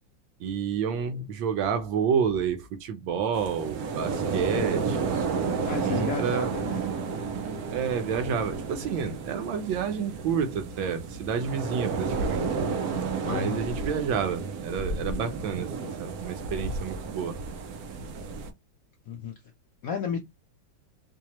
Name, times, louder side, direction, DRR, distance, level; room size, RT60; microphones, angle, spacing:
voice 1, 0.4-5.1 5.8-6.5 7.7-12.6 13.2-17.4, right 7 dB, 85° right, 1.5 m, -29 dB
sound 1, 3.3-18.5, right 5 dB, 65° right, 1.0 m, -32 dB
voice 2, 4.8-6.8 13.2-13.6 19.1-19.3 19.8-20.2, left 7 dB, 70° left, 0.8 m, -33 dB
4.6 x 2.3 x 3.0 m
omnidirectional pair, 2.1 m